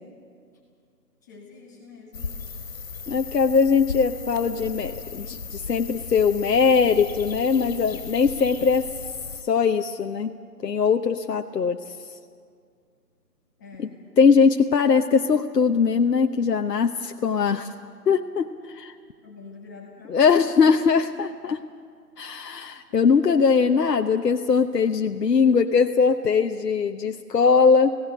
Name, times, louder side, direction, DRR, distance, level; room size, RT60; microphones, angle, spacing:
voice 1, 1.2-2.4 13.6-14.0 19.2-20.8, left 4 dB, 10° left, -3 dB, 1.3 m, -46 dB
sound 1, 2.1-9.4, left 5 dB, 55° left, 3.0 m, -36 dB
voice 2, 3.1-8.9 9.4-10.3 10.6-12.1 13.8-13.9 14.2-17.7 18.1-19.0 20.1-21.6 22.2-28.0, left 5 dB, 70° left, 5 dB, 0.9 m, -21 dB
27.0 x 16.5 x 6.4 m, 2.2 s
figure-of-eight pair, 165°, 50 cm